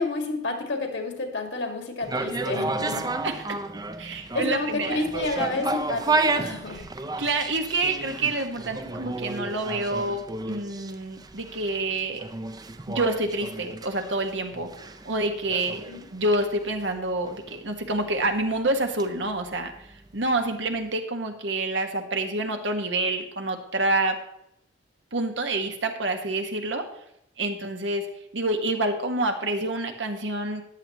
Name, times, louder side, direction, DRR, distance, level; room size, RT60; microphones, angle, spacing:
voice 1, 0.0-3.2 4.3-6.9 15.9-16.1, left 3 dB, 80° left, 3 dB, 2.1 m, -30 dB
sound 1, 2.0-20.1 20.5-20.6, right 3 dB, 20° right, 0.5 m, -32 dB
voice 2, 4.0-5.0 7.2-12.2 12.9-14.7 15.0-15.8 16.1-19.9 20.1-24.2 25.1-26.8 27.4-28.1 28.3-30.6, right 2 dB, 85° right, 4 dB, 1.5 m, -27 dB
14.0 x 10.5 x 3.0 m, 0.77 s
head